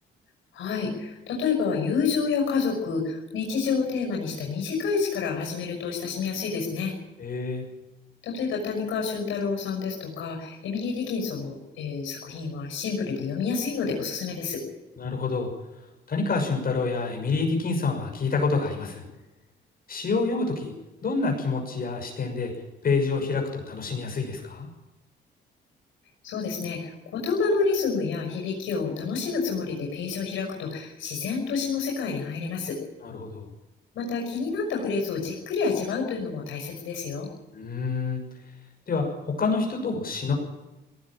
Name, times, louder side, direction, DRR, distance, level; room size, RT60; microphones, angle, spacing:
voice 1, 0.5-6.9 8.2-14.6 26.2-32.8 33.9-37.3, left 5 dB, 85° left, 0 dB, 6.1 m, -28 dB
voice 2, 7.2-7.7 15.0-15.5 16.1-19.0 19.9-20.7 21.0-22.5 22.8-24.7 33.0-33.5 37.5-38.2 38.9-39.1 39.4-40.3, left 4 dB, 50° left, 1 dB, 6.2 m, -27 dB
18.5 x 17.0 x 8.9 m, 1.1 s
cardioid pair, 90°, 20 cm